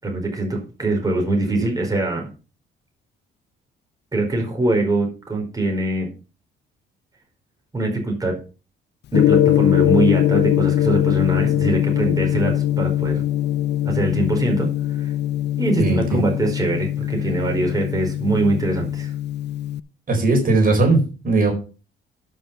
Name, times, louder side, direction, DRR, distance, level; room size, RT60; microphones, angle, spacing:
voice 1, 0.0-2.3 4.1-6.1 7.7-8.4 9.1-13.2 13.8-15.1 15.6-19.1, right 2 dB, 20° right, 1 dB, 4.8 m, -23 dB
Gong, 9.1-19.8, left 12 dB, 60° left, 0.5 m, -21 dB
voice 2, 15.8-16.2 20.1-21.5, right 3 dB, 45° right, 2 dB, 4.3 m, -18 dB
11.5 x 5.8 x 5.6 m, 0.34 s
cardioid pair, 90°, 20 cm